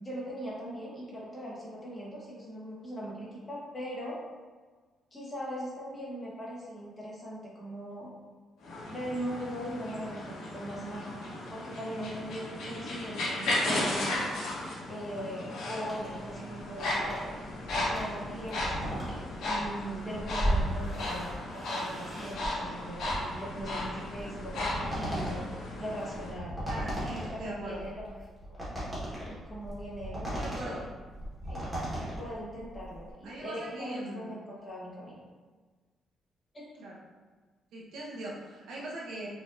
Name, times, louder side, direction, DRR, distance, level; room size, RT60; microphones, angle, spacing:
voice 1, 0.0-4.2 5.1-8.1 8.9-14.3 14.9-17.3 17.8-19.1 19.4-25.4 25.8-26.6 27.3-28.1 29.3-30.8 31.4-31.7 32.2-35.2 36.5-36.9, equal, 20° left, -6 dB, 1.0 m, -40 dB
sound 1, 8.6-26.3, left 1 dB, 70° left, 0.9 m, -35 dB
sound 2, 15.9-33.1, equal, 10° right, 1.2 m, -37 dB
voice 2, 26.7-27.9 30.2-30.8 33.2-34.3 36.8-37.0 37.7-39.3, right 1 dB, 70° right, -4 dB, 0.7 m, -41 dB
4.8 x 2.6 x 2.4 m, 1.4 s
cardioid pair, 170°, 0 cm